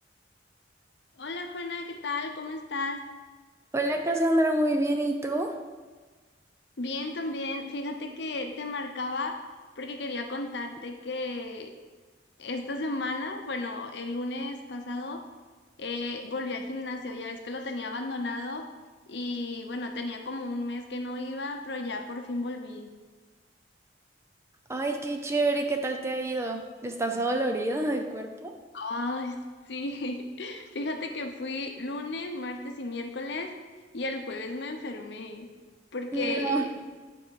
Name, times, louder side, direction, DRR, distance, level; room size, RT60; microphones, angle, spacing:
voice 1, 1.2-3.0 6.8-9.4 9.8-11.7 12.4-15.2 15.8-18.7 19.1-22.9 28.7-29.4 29.7-33.5 33.9-35.5 35.9-36.8, left 2 dB, 65° left, 5 dB, 0.7 m, -34 dB
voice 2, 3.7-5.6 24.7-28.5 36.1-36.6, right 1 dB, 15° right, 4 dB, 0.5 m, -27 dB
8.3 x 4.6 x 4.8 m, 1.4 s
head